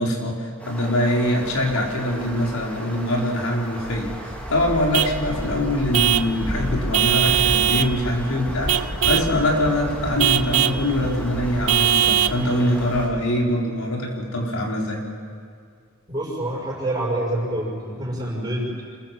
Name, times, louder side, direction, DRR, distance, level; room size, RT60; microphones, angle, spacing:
voice 1, 0.0-15.0, left 1 dB, 80° left, -1 dB, 4.6 m, -23 dB
sound 1, 0.6-13.1, equal, 5° left, 3.0 m, -32 dB
Vehicle horn car horn honking / Truck, 4.9-5.2 5.9-6.3 6.9-7.9 8.7-9.3 10.2-10.8 11.7-12.4, right 12 dB, 85° right, 0.6 m, -20 dB
voice 2, 16.1-18.8, right 1 dB, 20° right, -5 dB, 6.5 m, -27 dB
27.0 x 21.5 x 7.7 m, 2.1 s
head